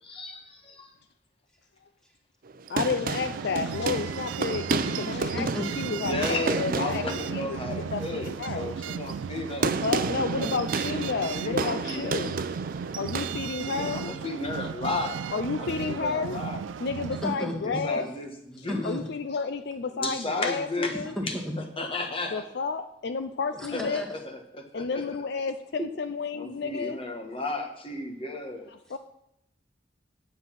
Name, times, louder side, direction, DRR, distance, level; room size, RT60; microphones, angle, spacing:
voice 1, 0.0-0.9 6.0-9.8 10.8-11.1 11.4-12.2 13.6-15.2 15.6-16.6 17.6-18.9 19.9-21.4 21.8-22.5 23.7-25.1 26.3-28.7, left 2 dB, 30° left, 4 dB, 1.5 m, -34 dB
sound 1, 2.5-13.3, right 4 dB, 50° right, 0.6 m, -32 dB
voice 2, 2.7-5.5 5.8-6.2 6.6-7.0 7.3-7.6 7.9-8.7 9.6-12.4 13.0-14.1 15.3-16.4 16.8-18.1 18.6-21.2 22.3-24.0 24.7-27.0 28.7-29.0, left 4 dB, 60° left, 10 dB, 0.5 m, -31 dB
sound 2, 3.2-17.4, right 7 dB, 90° right, 0.4 m, -36 dB
voice 3, 17.2-17.8 18.7-19.0 21.2-21.6 23.6-24.1 25.8-25.9, equal, 5° left, 0 dB, 1.9 m, -32 dB
9.6 x 7.9 x 5.8 m, 0.79 s
head